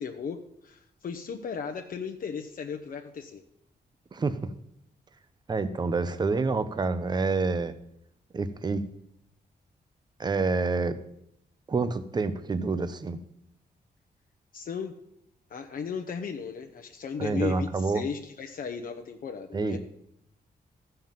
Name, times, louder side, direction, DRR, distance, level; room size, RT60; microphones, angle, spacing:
voice 1, 0.0-3.4 14.5-14.9 15.5-19.8, left 6 dB, 55° left, 0.8 m, -36 dB
voice 2, 4.1-4.5 5.5-7.8 8.3-8.8 10.2-11.0 11.7-13.2 17.2-18.0 19.5-19.8, right 4 dB, 25° right, 0.7 m, -27 dB
13.5 x 5.7 x 7.4 m
wide cardioid pair, 165°, 17 cm